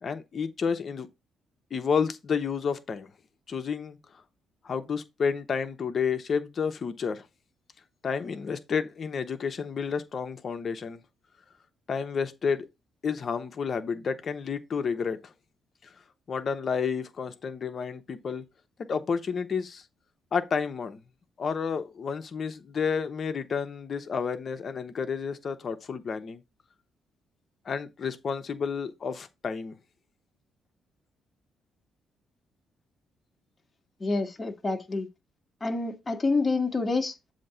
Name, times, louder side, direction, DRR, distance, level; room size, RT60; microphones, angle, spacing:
voice 1, 0.0-1.1 1.7-3.1 3.5-4.0 4.6-7.2 8.0-11.0 11.9-12.7 13.0-15.3 15.8-15.9 16.3-18.4 18.9-19.8 20.3-21.0 21.4-26.4 27.6-29.8, left 6 dB, 50° left, 1.0 m, -30 dB
voice 2, 34.0-35.1 35.6-37.3, left 3 dB, 20° left, 1.4 m, -28 dB
7.5 x 2.9 x 5.6 m
cardioid pair, 90°, 0 cm